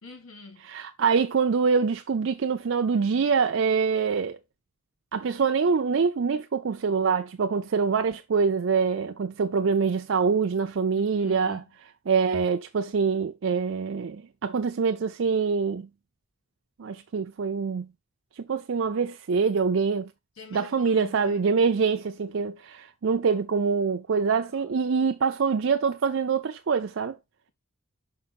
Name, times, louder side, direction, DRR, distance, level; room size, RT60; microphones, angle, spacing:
voice 1, 0.0-0.7 11.0-11.6 20.4-21.4 24.5-24.7, left 3 dB, 80° left, 1.8 m, -47 dB
voice 2, 0.7-4.4 5.1-11.6 12.1-15.9 16.8-17.9 18.4-20.1 20.5-27.2, right 5 dB, 65° right, 0.4 m, -25 dB
5.8 x 4.9 x 4.0 m
head